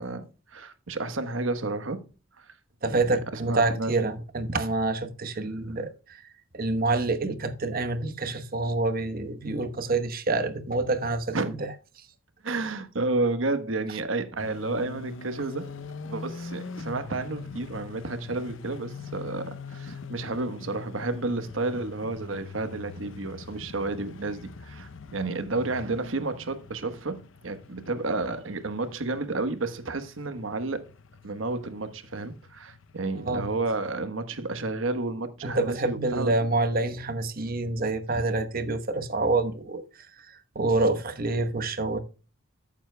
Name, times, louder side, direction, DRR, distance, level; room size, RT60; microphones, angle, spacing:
voice 1, 0.0-2.0 2.4-2.5 2.9-4.0 5.5-5.8 11.3-11.6 12.4-15.7 16.0-30.8 31.2-36.3, right 3 dB, 85° right, 1.2 m, -31 dB
voice 2, 2.8-6.2 6.5-11.6 33.3-33.5 35.4-39.8 40.5-42.0, right 2 dB, 50° right, 1.1 m, -27 dB
sound 1, 14.4-33.9, left 4 dB, 75° left, 0.6 m, -43 dB
14.0 x 7.3 x 2.2 m
head